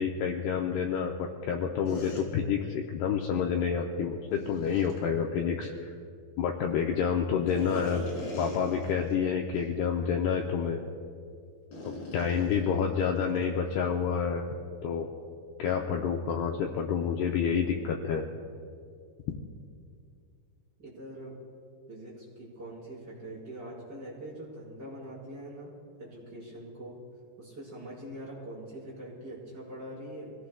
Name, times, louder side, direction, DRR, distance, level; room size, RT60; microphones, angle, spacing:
voice 1, 0.0-5.9 6.4-8.0 8.4-10.8 11.8-14.4 14.8-15.1 15.6-18.3, left 7 dB, 80° left, 1 dB, 2.4 m, -29 dB
sound 1, 1.9-2.2 4.3-5.0 7.5-9.2 9.5-9.7 10.3-10.4 11.7-13.5, equal, 55° left, 5.2 m, -40 dB
voice 2, 20.8-21.3 21.9-25.7 26.0-27.0 27.4-30.3, right 1 dB, 25° right, -6 dB, 4.9 m, -43 dB
26.0 x 18.0 x 2.3 m, 2.4 s
omnidirectional pair, 5.4 m